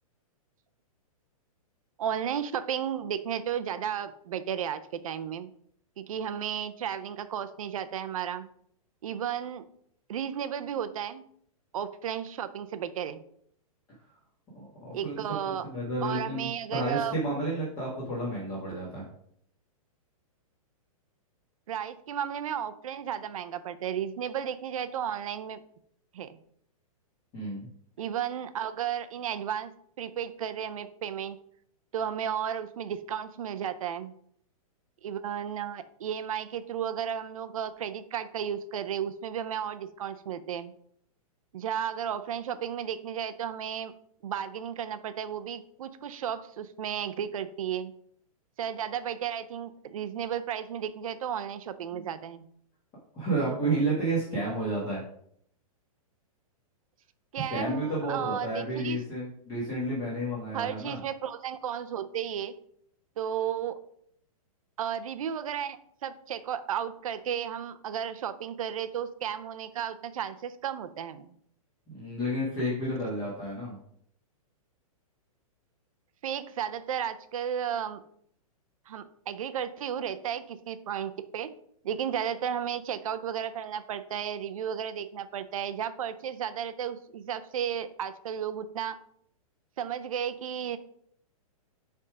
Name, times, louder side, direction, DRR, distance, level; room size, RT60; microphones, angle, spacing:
voice 1, 2.0-5.5 6.0-8.5 9.0-9.6 10.1-11.2 11.7-13.2 14.9-15.6 16.0-17.1 21.7-25.6 26.1-26.4 28.0-29.7 30.0-31.4 31.9-34.1 35.0-40.7 41.5-43.9 44.2-47.9 48.6-52.4 57.3-59.0 60.5-62.6 63.2-63.8 64.8-71.3 76.2-78.0 78.9-81.5 81.8-89.0 89.8-90.8, right 9 dB, 65° right, 12 dB, 0.6 m, -33 dB
voice 2, 14.5-19.0 27.3-27.7 51.9-52.0 53.1-55.0 57.5-61.0 71.9-73.8, right 1 dB, 20° left, -6 dB, 1.5 m, -31 dB
6.8 x 3.6 x 4.9 m, 0.66 s
hypercardioid pair, 165°, 19 cm